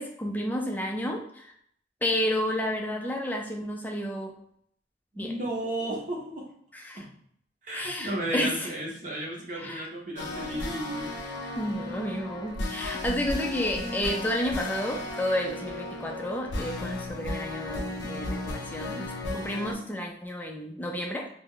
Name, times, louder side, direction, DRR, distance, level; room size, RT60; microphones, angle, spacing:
voice 1, 0.0-1.5 2.0-4.3 5.2-5.3 6.7-7.0 7.7-8.7 9.6-9.8 11.6-21.3, left 1 dB, 10° left, 1 dB, 0.3 m, -31 dB
voice 2, 5.1-6.4 6.9-7.1 7.6-11.1, right 1 dB, 45° right, -3 dB, 0.8 m, -33 dB
sound 1, 10.2-19.7, left 2 dB, 75° left, 0.5 m, -35 dB
2.3 x 2.0 x 3.6 m, 0.66 s
head